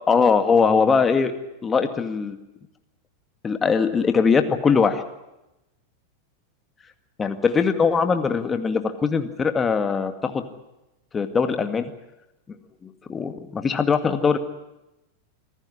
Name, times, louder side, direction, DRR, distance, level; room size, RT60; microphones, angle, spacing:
voice 1, 0.1-1.3 1.6-2.4 3.4-5.0 7.2-10.4 11.1-11.9 12.8-14.4, left 5 dB, 20° left, 8 dB, 2.1 m, -21 dB
26.5 x 15.0 x 9.8 m, 0.95 s
figure-of-eight pair, 90°, 0 cm